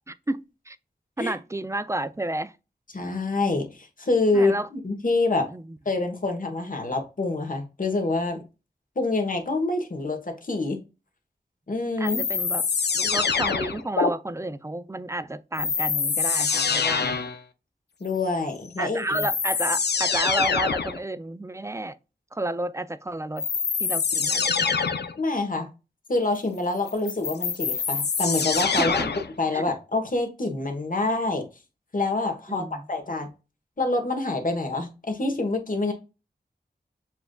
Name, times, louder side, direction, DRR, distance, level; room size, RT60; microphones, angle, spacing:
voice 1, 0.1-0.8 1.2-2.6 4.3-4.7 5.5-5.8 12.0-12.7 13.0-17.2 18.8-22.0 22.3-23.5 23.8-24.7 28.7-29.1 29.5-29.6 32.5-32.9, right 2 dB, 15° right, 0.3 m, -31 dB
voice 2, 2.9-5.5 5.8-8.4 9.0-10.8 11.7-12.2 18.0-19.3 25.2-25.7 26.1-29.0 29.4-31.4 31.9-33.3 33.8-35.9, left 2 dB, 50° left, 1.1 m, -26 dB
sound 1, 12.0-14.1 15.6-17.4 18.7-18.8 19.1-21.0 23.4-25.2 26.9-29.3, left 5 dB, 65° left, 0.5 m, -25 dB
6.9 x 2.5 x 2.2 m
wide cardioid pair, 55°, 18 cm